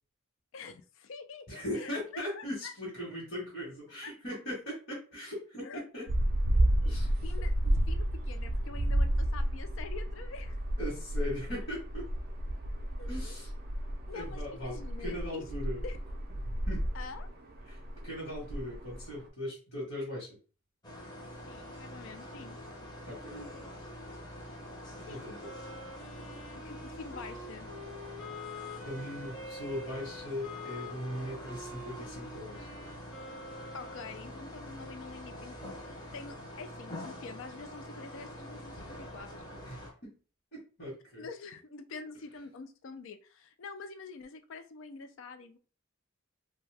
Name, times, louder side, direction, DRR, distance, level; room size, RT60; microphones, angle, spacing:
voice 1, 0.5-2.7 4.0-4.1 5.6-5.8 6.5-10.6 13.0-13.3 14.1-15.4 15.8-16.0 16.9-17.3 21.5-22.6 25.0-25.2 26.5-27.7 33.7-39.3 41.2-45.6, left 4 dB, 65° left, 9 dB, 0.4 m, -46 dB
voice 2, 1.5-6.1 6.8-7.1 10.8-12.0 13.0-13.5 14.1-15.8 16.4-16.9 17.6-20.3 23.1-23.4 25.1-25.5 28.8-32.7 39.6-40.1 40.5-41.3, equal, 50° left, -6 dB, 1.1 m, -39 dB
sound 1, 6.1-19.3, right 1 dB, 45° right, 0.4 m, -32 dB
sound 2, 20.8-39.9, left 1 dB, 20° left, 0.6 m, -45 dB
Wind instrument woodwind instrument, 25.4-34.3, left 2 dB, 90° left, 1.0 m, -46 dB
2.6 x 2.2 x 3.2 m, 0.38 s
head